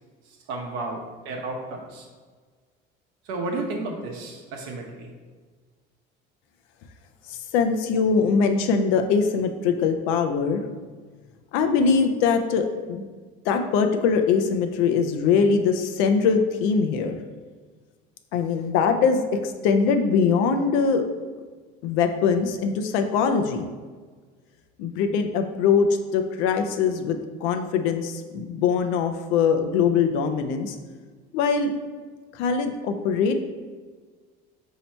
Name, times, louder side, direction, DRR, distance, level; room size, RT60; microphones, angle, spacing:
voice 1, 0.5-2.1 3.2-5.1, right 2 dB, 80° right, 0 dB, 0.8 m, -32 dB
voice 2, 7.3-10.6 11.5-13.0 13.4-17.2 18.3-21.0 21.8-23.7 24.8-25.9 26.1-30.8 31.3-31.7 32.3-33.4, left 5 dB, 90° left, 6 dB, 0.4 m, -22 dB
4.3 x 2.8 x 4.2 m, 1.5 s
cardioid pair, 125°, 21 cm